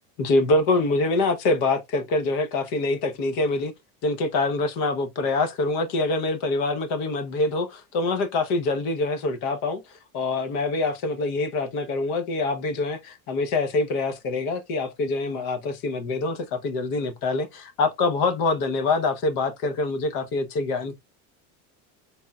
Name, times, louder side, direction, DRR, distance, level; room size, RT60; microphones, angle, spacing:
voice 1, 0.2-3.7 4.0-9.8 10.1-20.9, left 3 dB, 60° left, 1.0 m, -25 dB
4.2 x 3.5 x 2.3 m
supercardioid pair, 135°, 42 cm